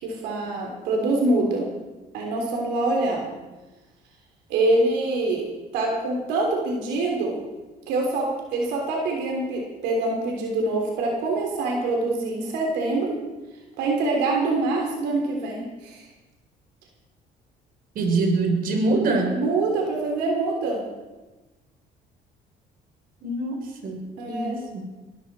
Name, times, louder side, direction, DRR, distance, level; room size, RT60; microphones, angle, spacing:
voice 1, 0.0-1.7 2.1-3.3 4.5-5.4 5.7-7.4 7.9-13.2 13.8-16.0 19.3-20.8 24.2-24.6, right 2 dB, 90° right, 0 dB, 3.5 m, -25 dB
voice 2, 17.9-19.4 23.2-24.8, right 3 dB, 60° right, 3 dB, 3.9 m, -24 dB
21.5 x 14.5 x 4.4 m, 1.1 s
cardioid pair, 110°, 17 cm